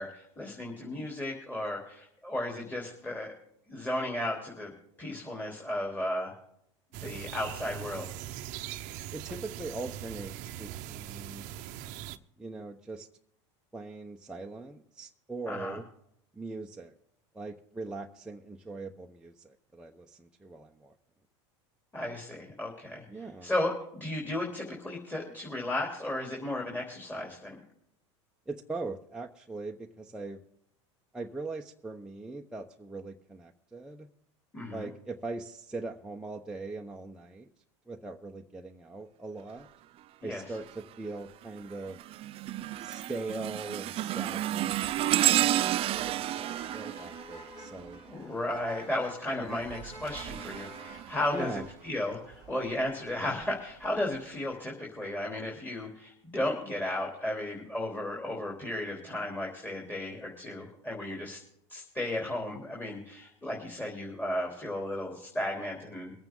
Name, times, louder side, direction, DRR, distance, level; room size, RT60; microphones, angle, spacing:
voice 1, 0.0-3.3 3.7-4.7 5.0-6.3 7.0-8.1 15.5-15.8 21.9-27.6 34.5-34.9 40.2-40.4 48.0-61.4 61.7-66.1, left 1 dB, 10° left, -2 dB, 3.5 m, -34 dB
sound 1, 6.9-12.2, right 12 dB, 60° right, 0.9 m, -41 dB
voice 2, 9.1-11.5 12.4-13.1 13.7-15.9 16.3-16.9 17.3-20.9 23.1-23.5 28.5-30.4 31.1-34.1 34.7-37.5 37.9-39.7 40.2-42.0 42.8-48.0 49.4-49.5 51.3-51.7, right 3 dB, 5° right, -1 dB, 0.9 m, -41 dB
sound 2, 40.5-40.9 41.4-48.2 49.5-51.7 52.3-52.5 53.4-53.5, right 13 dB, 40° right, 0.4 m, -31 dB
Motor vehicle (road), 44.0-54.5, left 1 dB, 40° left, 4.8 m, -51 dB
23.5 x 8.9 x 3.8 m, 0.73 s
hypercardioid pair, 100°, 15 cm